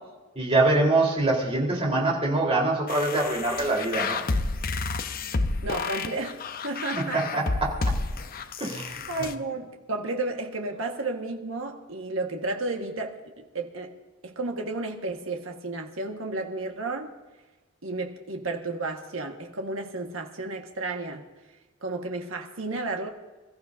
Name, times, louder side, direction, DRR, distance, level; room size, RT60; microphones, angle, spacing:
voice 1, 0.4-4.2 6.9-7.7 8.6-9.0, right 2 dB, 30° right, 4.1 m, -24 dB
sound 1, 2.9-9.3, left 3 dB, 45° left, 0.8 m, -30 dB
voice 2, 5.6-7.2 9.1-13.2 13.5-13.9 14.2-17.1 17.8-21.2 21.8-23.1, right 2 dB, 75° right, 1.7 m, -32 dB
27.0 x 14.5 x 2.7 m
head